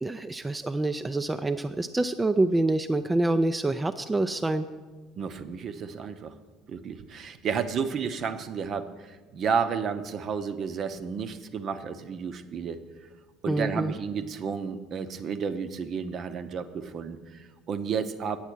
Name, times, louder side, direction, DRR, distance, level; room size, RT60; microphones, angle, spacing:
voice 1, 0.0-4.7 13.5-13.9, right 2 dB, 15° right, 8 dB, 0.4 m, -26 dB
voice 2, 5.2-6.3 6.7-12.8 13.4-18.4, right 6 dB, 45° right, 10 dB, 0.7 m, -32 dB
8.8 x 8.1 x 6.2 m, 1.3 s
figure-of-eight pair, 60°, 0 cm